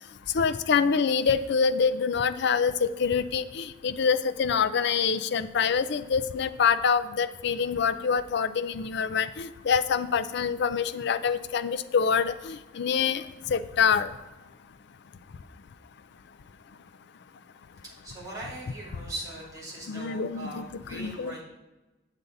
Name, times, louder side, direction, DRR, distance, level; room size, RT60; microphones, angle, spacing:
voice 1, 0.3-13.2 13.5-14.1 19.9-21.4, left 6 dB, 60° left, 11 dB, 0.4 m, -26 dB
voice 2, 18.0-21.4, right 1 dB, 20° right, -6 dB, 2.6 m, -40 dB
8.1 x 7.0 x 4.0 m, 1.1 s
head